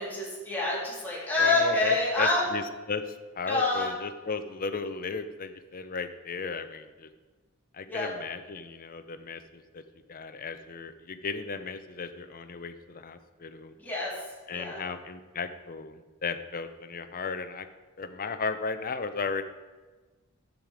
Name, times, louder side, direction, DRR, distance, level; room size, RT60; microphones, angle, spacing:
voice 1, 0.0-2.5 3.5-3.9 7.9-8.1 13.8-14.1 14.5-14.8, left 3 dB, 10° left, -7 dB, 3.6 m, -27 dB
voice 2, 1.4-7.1 7.7-9.8 10.1-13.7 14.5-17.7 18.0-19.4, left 4 dB, 40° left, 10 dB, 0.7 m, -35 dB
11.0 x 7.6 x 4.9 m, 1.3 s
head